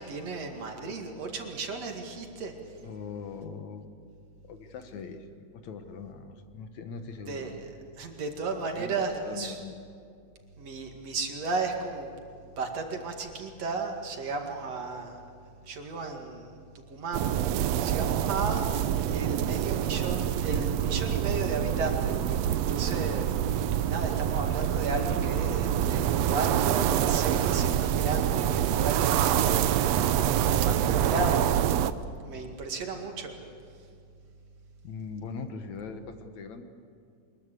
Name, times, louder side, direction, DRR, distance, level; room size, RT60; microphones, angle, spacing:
voice 1, 0.0-2.5 7.3-7.5 8.0-9.6 10.6-12.1 12.6-15.2 15.7-16.6 16.9-18.7 19.1-23.3 23.9-31.5 32.2-33.4, right 4 dB, 55° right, 3 dB, 3.2 m, -34 dB
voice 2, 2.8-4.0 4.5-7.6 8.6-9.8 34.8-36.6, left 5 dB, 70° left, 7 dB, 2.6 m, -41 dB
sound 1, 17.1-31.9, right 10 dB, 75° right, 1.6 m, -26 dB
24.0 x 21.5 x 8.3 m, 2.4 s
omnidirectional pair, 3.5 m